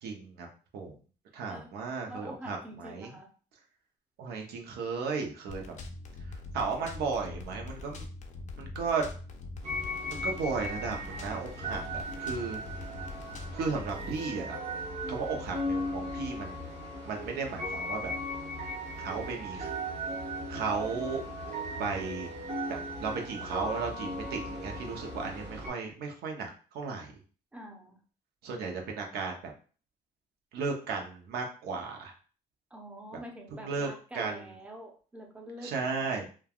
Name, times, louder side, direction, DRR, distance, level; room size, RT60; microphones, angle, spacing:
voice 1, 0.0-0.5 0.7-0.9 1.3-3.1 4.2-5.8 6.2-8.1 8.6-9.1 10.2-12.6 13.5-14.6 15.1-18.1 19.0-19.7 20.5-21.2 21.8-22.3 22.7-27.2 28.4-29.5 30.5-32.1 33.6-34.5 35.6-36.3, right 4 dB, 70° right, 2 dB, 0.8 m, -35 dB
voice 2, 2.1-3.3 27.5-28.0 32.7-36.3, right 1 dB, 5° right, 1 dB, 0.7 m, -46 dB
sound 1, 5.5-14.1, left 2 dB, 45° left, 0.5 m, -43 dB
sound 2, 9.6-25.7, equal, 40° right, 1.0 m, -37 dB
3.3 x 2.2 x 2.3 m, 0.39 s
cardioid pair, 110°, 17 cm